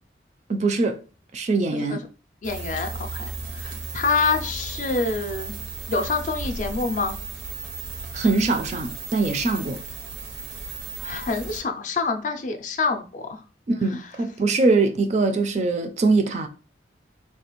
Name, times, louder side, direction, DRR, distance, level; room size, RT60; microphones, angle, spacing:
voice 1, 0.5-1.0 1.3-2.0 8.1-9.8 13.7-16.5, right 3 dB, 40° right, 0.3 m, -22 dB
voice 2, 1.7-2.0 2.4-5.6 5.9-7.2 11.0-13.4, left 4 dB, 45° left, 0.4 m, -27 dB
sound 1, 2.4-11.6, right 3 dB, 75° right, 0.6 m, -35 dB
3.2 x 2.3 x 3.0 m
head